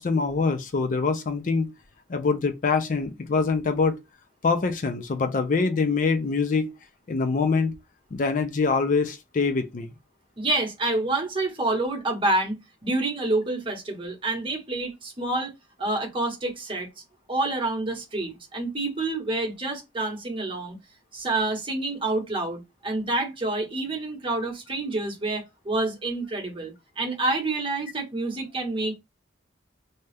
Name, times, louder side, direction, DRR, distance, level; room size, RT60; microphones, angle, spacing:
voice 1, 0.0-1.7 2.1-4.0 4.4-6.7 7.1-7.7 8.1-9.9, left 4 dB, 45° left, 0.4 m, -24 dB
voice 2, 10.4-15.5 15.8-16.9 17.3-20.8 21.1-29.0, right 2 dB, 30° right, 1.0 m, -28 dB
2.7 x 2.3 x 3.3 m
head